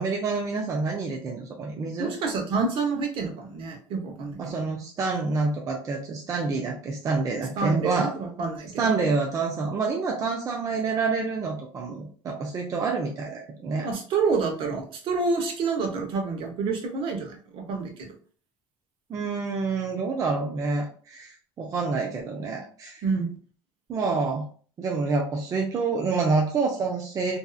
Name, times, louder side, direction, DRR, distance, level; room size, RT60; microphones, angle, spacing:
voice 1, 0.0-2.1 4.4-8.1 8.8-13.9 19.1-23.0 23.9-24.4 24.8-27.4, right 4 dB, 35° right, 0 dB, 0.5 m, -27 dB
voice 2, 2.0-4.4 7.6-8.9 13.8-18.1 23.0-23.3, right 4 dB, 55° right, 3 dB, 0.8 m, -28 dB
2.6 x 2.4 x 2.3 m, 0.43 s
supercardioid pair, 115°, 10 cm